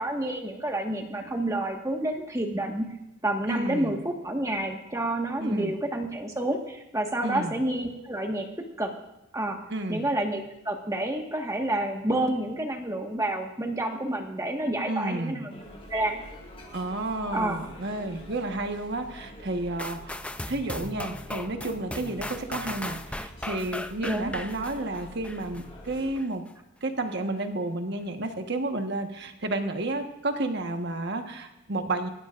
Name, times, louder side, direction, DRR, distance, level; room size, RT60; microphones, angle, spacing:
voice 1, 0.0-2.8 3.2-8.5 8.8-8.9 9.3-9.6 9.9-15.5 15.9-16.1 17.3-17.6 24.0-24.3, right 1 dB, 15° right, 2 dB, 1.6 m, -29 dB
voice 2, 3.5-4.0 5.4-5.7 7.2-7.6 9.7-10.0 14.9-15.4 16.7-26.4 26.8-32.1, right 2 dB, 55° right, 5 dB, 1.4 m, -31 dB
sound 1, 15.5-26.1, equal, 25° left, 5.2 m, -46 dB
sound 2, 19.8-25.6 26.1-26.3, left 1 dB, 5° left, 0.5 m, -37 dB
25.0 x 14.5 x 2.6 m, 0.96 s
head